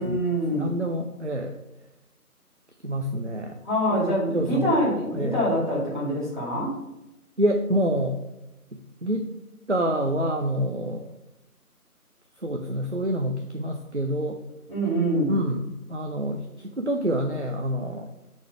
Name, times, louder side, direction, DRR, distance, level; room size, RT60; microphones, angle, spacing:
voice 1, 0.0-0.7 3.6-6.8 14.7-15.3, equal, 30° right, -7 dB, 2.2 m, -25 dB
voice 2, 0.5-1.6 2.8-3.6 3.9-4.0 4.3-4.8 5.1-5.4 7.4-8.2 9.0-9.3 9.7-11.0 12.4-14.4 15.3-18.1, equal, 50° right, 3 dB, 0.5 m, -27 dB
5.7 x 4.2 x 4.9 m, 0.93 s
figure-of-eight pair, 175°, 45 cm